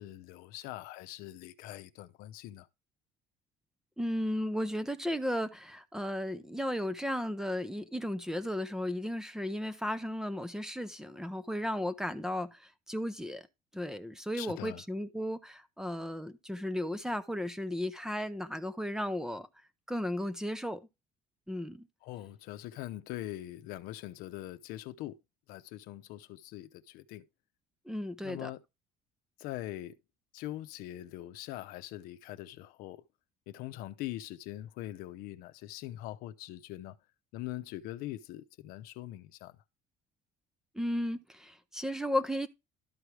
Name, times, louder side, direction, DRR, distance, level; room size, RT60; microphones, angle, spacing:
voice 1, 0.0-2.7 14.3-14.8 22.0-25.2 25.5-27.2 28.2-28.6 29.4-30.0 30.3-33.0 33.5-37.0 37.3-39.6, left 14 dB, 80° left, 0.7 m, -42 dB
voice 2, 4.0-13.4 13.7-19.5 19.9-20.8 21.5-21.9 27.9-28.5 40.7-42.5, left 1 dB, 5° right, 0.6 m, -35 dB
12.5 x 4.8 x 3.2 m
cardioid pair, 145°, 15 cm